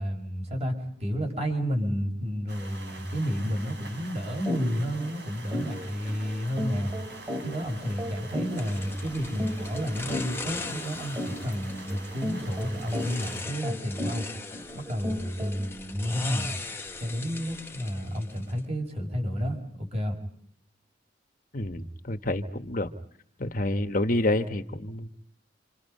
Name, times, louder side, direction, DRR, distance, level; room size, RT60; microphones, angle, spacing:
voice 1, 0.0-6.9 7.4-14.3 14.7-16.5 17.0-20.2, equal, 35° right, 4 dB, 6.1 m, -31 dB
sound 1, 2.5-13.4, right 3 dB, 70° right, 5.6 m, -46 dB
sound 2, 4.5-4.6 5.0-5.1 5.5-15.7, left 1 dB, 20° right, 3.8 m, -36 dB
sound 3, 8.6-18.7, left 3 dB, 15° left, 1.5 m, -40 dB
voice 2, 21.5-22.9 23.4-25.1, left 1 dB, 50° left, 8 dB, 1.3 m, -28 dB
28.0 x 27.0 x 5.5 m, 0.66 s
head